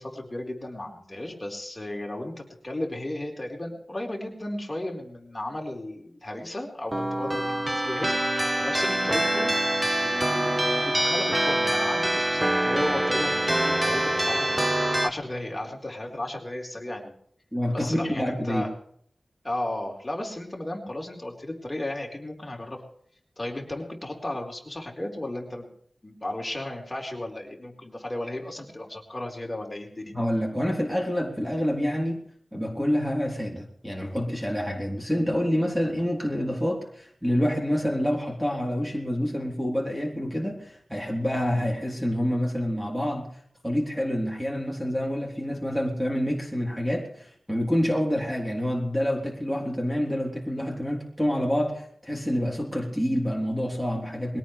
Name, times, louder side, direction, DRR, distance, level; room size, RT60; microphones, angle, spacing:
voice 1, 0.0-8.3 8.6-9.5 10.0-17.1 17.7-18.7 19.4-22.8 23.4-25.7 26.0-30.1, left 1 dB, 25° left, 0 dB, 4.4 m, -34 dB
sound 1, 6.9-15.1, right 1 dB, 20° right, 1.2 m, -25 dB
voice 2, 17.5-18.6 30.1-32.2 32.5-43.3 43.6-54.4, equal, 5° right, 0 dB, 3.6 m, -27 dB
22.0 x 17.5 x 3.3 m, 0.64 s
wide cardioid pair, 80°, 0 cm